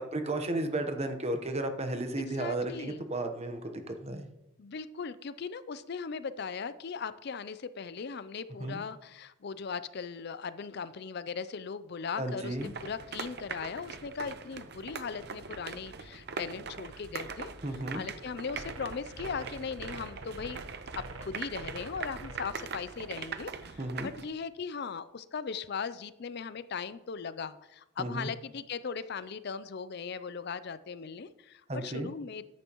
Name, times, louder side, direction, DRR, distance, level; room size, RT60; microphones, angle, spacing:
voice 1, 0.0-4.3 8.6-8.8 12.2-12.7 17.6-18.0 23.8-24.1 28.0-28.3 31.7-32.1, right 2 dB, 30° right, 6 dB, 1.0 m, -34 dB
voice 2, 2.2-3.0 4.6-17.5 17.9-20.6 21.2-32.5, left 5 dB, 50° left, 14 dB, 0.4 m, -38 dB
sound 1, 12.4-24.2, right 5 dB, 50° right, 0.7 m, -42 dB
sound 2, 18.5-22.5, right 2 dB, 65° right, 1.1 m, -45 dB
13.5 x 10.5 x 3.0 m, 0.92 s
head